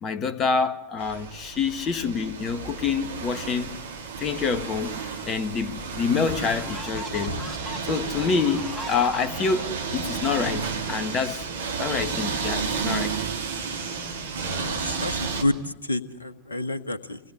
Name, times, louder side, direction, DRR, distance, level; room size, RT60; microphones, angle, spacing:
voice 1, 0.0-3.8 4.2-7.4 7.8-11.5 11.8-13.2, left 5 dB, 30° left, 1.7 m, -27 dB
sound 1, 1.0-15.4, right 5 dB, 65° right, 3.3 m, -32 dB
sound 2, 5.4-5.5 6.1-11.1, equal, ahead, 2.8 m, -40 dB
Wood, 6.0-7.8 10.4-11.2 11.6-11.7, left 2 dB, 60° left, 2.3 m, -40 dB
voice 2, 14.5-17.2, left 2 dB, 75° left, 1.5 m, -29 dB
28.5 x 20.5 x 8.2 m
figure-of-eight pair, 90°, 0 cm